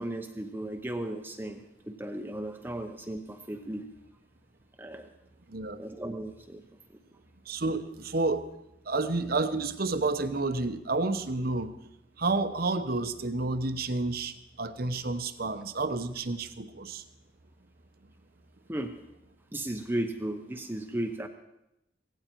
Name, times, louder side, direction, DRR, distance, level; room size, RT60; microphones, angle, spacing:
voice 1, 0.0-3.8 4.8-5.1 5.8-6.6 18.7-18.9 19.5-21.3, right 1 dB, 10° right, 5 dB, 0.8 m, -35 dB
voice 2, 5.5-5.8 7.5-8.4 8.9-11.7 12.2-17.0, right 3 dB, 55° right, 11 dB, 1.0 m, -30 dB
17.5 x 16.0 x 4.6 m, 0.85 s
head